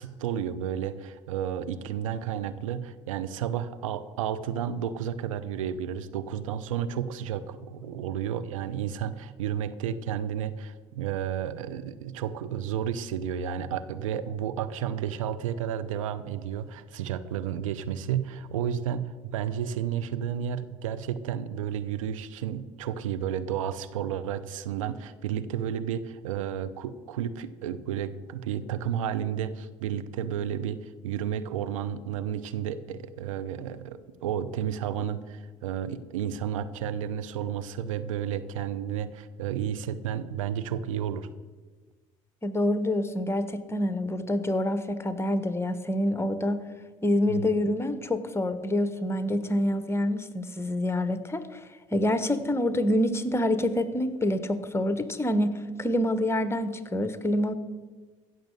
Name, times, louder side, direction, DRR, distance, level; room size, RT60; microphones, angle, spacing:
voice 1, 0.0-41.3 47.3-47.5, right 9 dB, 80° right, 12 dB, 0.7 m, -32 dB
voice 2, 42.4-46.6 47.0-51.6 51.9-57.5, left 1 dB, 15° left, 12 dB, 1.3 m, -27 dB
15.0 x 6.6 x 8.0 m, 1.3 s
hypercardioid pair, 60°, 17 cm